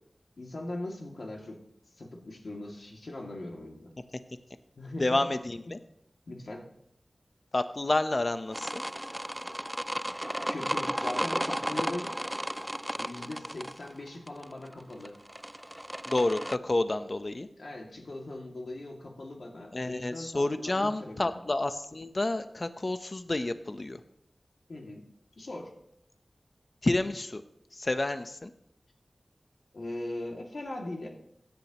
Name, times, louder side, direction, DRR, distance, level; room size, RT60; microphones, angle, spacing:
voice 1, 0.4-1.6 2.0-3.9 4.8-5.2 6.3-6.7 10.5-12.1 13.0-15.2 17.6-21.4 24.7-25.0 25.4-25.7 29.7-31.1, left 1 dB, 75° left, 0 dB, 2.4 m, -40 dB
voice 2, 5.0-5.8 7.5-8.8 16.1-17.5 19.7-24.0 26.8-27.4 27.7-28.5, left 2 dB, 50° left, 9 dB, 0.9 m, -29 dB
sound 1, 8.5-16.6, equal, 10° right, 0.3 m, -34 dB
16.5 x 10.5 x 3.1 m, 0.77 s
cardioid pair, 40°, 0 cm